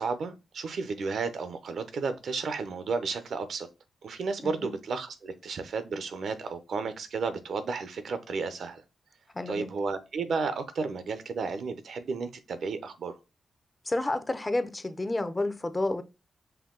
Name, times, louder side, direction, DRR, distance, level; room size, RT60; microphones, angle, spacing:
voice 1, 0.0-3.7 4.0-8.8 9.5-13.2, right 4 dB, 70° right, 0.6 m, -33 dB
voice 2, 9.3-9.7 13.9-16.0, left 2 dB, 25° left, 0.6 m, -30 dB
5.6 x 2.2 x 3.7 m
cardioid pair, 60°, 0 cm